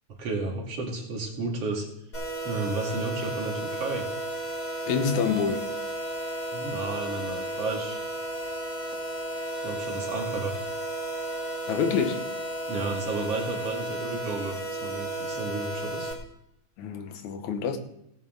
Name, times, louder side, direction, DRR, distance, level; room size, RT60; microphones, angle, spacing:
voice 1, 0.2-1.9 2.4-4.0 6.5-8.0 9.6-10.5 12.7-16.1, right 3 dB, 55° right, 3.2 m, -32 dB
sound 1, 2.1-16.1, right 1 dB, 30° left, 3.9 m, -33 dB
voice 2, 4.9-5.7 11.7-12.3 16.8-17.8, left 6 dB, 85° left, 2.5 m, -27 dB
17.5 x 9.0 x 3.8 m
omnidirectional pair, 3.3 m